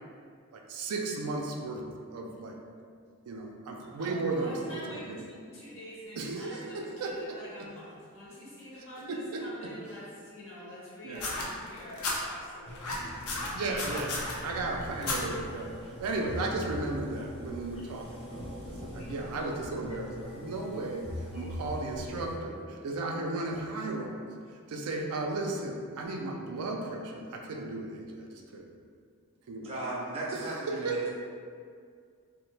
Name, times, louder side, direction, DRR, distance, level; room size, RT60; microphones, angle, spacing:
voice 1, 0.5-1.8 2.1-2.6 3.3-5.2 6.2-7.4 9.1-9.4 11.0-11.3 13.5-24.2 24.7-28.7 29.5-29.7 30.3-31.1, right 2 dB, 85° right, 1 dB, 0.4 m, -35 dB
voice 2, 4.0-13.6 14.0-14.4, equal, 60° left, -7 dB, 0.9 m, -46 dB
sound 1, 11.2-12.2 12.7-14.3 15.0-15.2 16.1-16.2, left 3 dB, 85° left, 0.6 m, -33 dB
sound 2, 12.7-22.4, equal, 25° left, 0.4 m, -42 dB
voice 3, 29.6-31.1, right 2 dB, 25° right, -4 dB, 0.4 m, -36 dB
2.9 x 2.1 x 3.1 m, 2.1 s
head